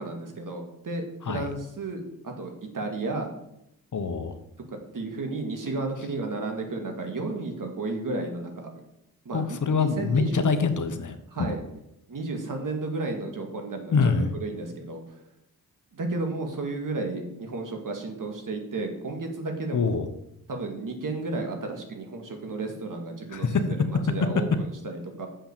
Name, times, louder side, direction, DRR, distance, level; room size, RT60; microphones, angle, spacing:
voice 1, 0.0-3.3 4.9-8.7 9.3-10.5 11.3-11.6 12.1-14.1 14.4-15.0 15.9-20.0 20.5-25.3, right 3 dB, 55° right, 3 dB, 2.0 m, -33 dB
voice 2, 3.9-4.3 9.3-11.5 13.9-14.3 19.7-20.1 23.3-23.6, left 5 dB, 55° left, 9 dB, 1.1 m, -25 dB
7.3 x 5.6 x 6.9 m, 0.81 s
cardioid pair, 50°, 37 cm